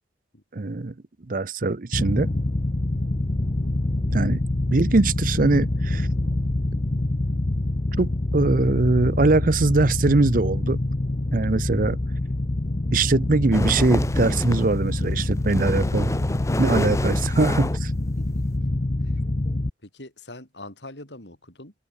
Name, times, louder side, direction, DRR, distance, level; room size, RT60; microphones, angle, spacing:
voice 1, 0.5-0.9 1.3-2.3 4.1-4.4 4.7-6.1 8.0-10.8 11.3-12.0 12.9-16.1 16.6-17.9, right 3 dB, 50° right, 0.8 m, -22 dB
sound 1, 1.9-19.7, left 1 dB, 40° left, 0.8 m, -26 dB
sound 2, 13.5-14.8 15.2-18.5, left 1 dB, 15° left, 1.9 m, -29 dB
voice 2, 18.2-18.6 19.0-19.1 19.8-21.7, left 2 dB, 80° left, 7.6 m, -43 dB
open air
head